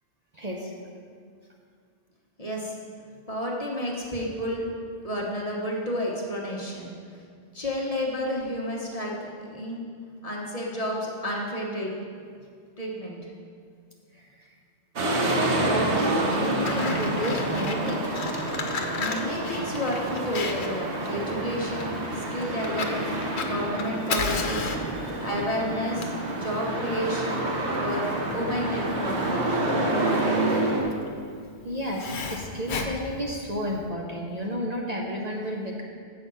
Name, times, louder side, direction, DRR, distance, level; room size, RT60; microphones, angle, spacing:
voice 1, 0.3-0.7 14.2-14.3 15.2-18.1 31.6-35.8, equal, 40° right, -1 dB, 0.8 m, -31 dB
voice 2, 2.4-2.8 3.3-4.7 5.0-6.9 7.5-9.8 10.2-11.9 12.8-13.3 19.0-27.5 27.7-28.0 28.3-29.3 29.8-30.4, equal, 35° left, -3 dB, 1.3 m, -31 dB
sound 1, 15.0-30.8, right 1 dB, 90° right, 1.4 m, -28 dB
Fire, 16.1-33.9, left 4 dB, 75° left, 1.0 m, -35 dB
7.7 x 6.4 x 5.5 m, 2.1 s
omnidirectional pair, 1.1 m